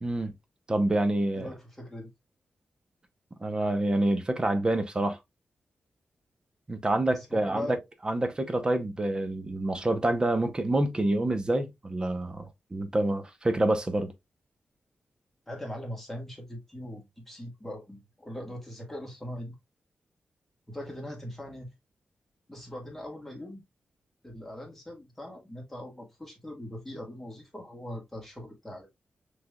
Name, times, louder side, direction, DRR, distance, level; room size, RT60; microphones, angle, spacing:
voice 1, 0.0-0.3 0.7-1.5 3.4-5.2 6.7-7.8 8.0-14.1, right 1 dB, 25° right, 0.8 m, -27 dB
voice 2, 1.3-2.1 7.1-7.8 15.5-19.6 20.7-21.7 22.5-23.6 24.2-28.9, left 1 dB, 5° left, 1.7 m, -41 dB
5.8 x 3.4 x 2.3 m
wide cardioid pair, 105°, 3 cm